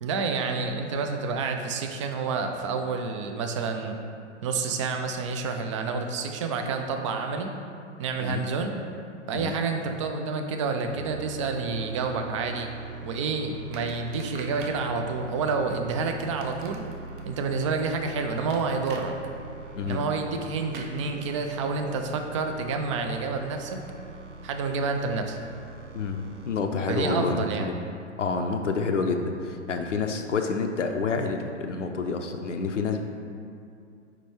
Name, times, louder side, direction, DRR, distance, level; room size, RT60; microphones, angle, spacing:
voice 1, 0.0-4.0 4.4-7.5 8.0-8.8 9.3-12.7 13.0-16.8 17.3-19.1 19.8-23.8 24.4-25.4 26.9-27.7, right 4 dB, 25° right, 4 dB, 0.4 m, -29 dB
sound 1, 10.8-26.6, right 4 dB, 80° right, 0.9 m, -42 dB
sound 2, 13.7-14.8 16.2-17.2 18.5-19.1 20.7-20.9, right 3 dB, 45° right, 0.8 m, -43 dB
voice 2, 25.9-27.7 28.2-33.0, left 4 dB, 80° left, 5 dB, 0.6 m, -28 dB
4.9 x 4.5 x 4.3 m, 2.4 s
figure-of-eight pair, 105°, 36 cm